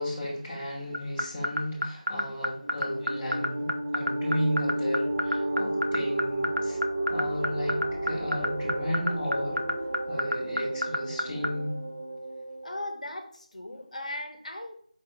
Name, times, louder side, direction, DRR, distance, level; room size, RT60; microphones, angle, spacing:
voice 1, 0.0-6.8 7.1-9.6 10.1-11.8, equal, 15° left, -8 dB, 0.9 m, -33 dB
sound 1, 0.9-11.5, equal, 85° right, 0.6 m, -27 dB
sound 2, 2.6-12.8, right 1 dB, 30° right, 0.5 m, -32 dB
voice 2, 12.6-14.7, left 1 dB, 65° left, 4 dB, 0.8 m, -38 dB
4.6 x 2.8 x 4.0 m, 0.62 s
figure-of-eight pair, 170°, 4 cm